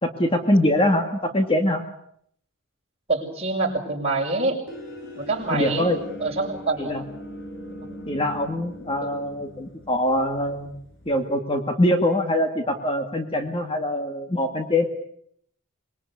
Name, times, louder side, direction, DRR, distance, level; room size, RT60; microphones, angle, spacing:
voice 1, 0.0-1.8 5.5-6.0 6.8-7.0 8.1-10.7 11.1-14.8, left 1 dB, 25° left, 5 dB, 2.0 m, -23 dB
voice 2, 3.1-4.6 5.2-5.9 6.2-6.9, right 3 dB, 30° right, -2 dB, 6.6 m, -25 dB
sound 1, 4.7-11.3, equal, 60° left, 5.6 m, -40 dB
25.0 x 22.5 x 8.4 m, 0.68 s
head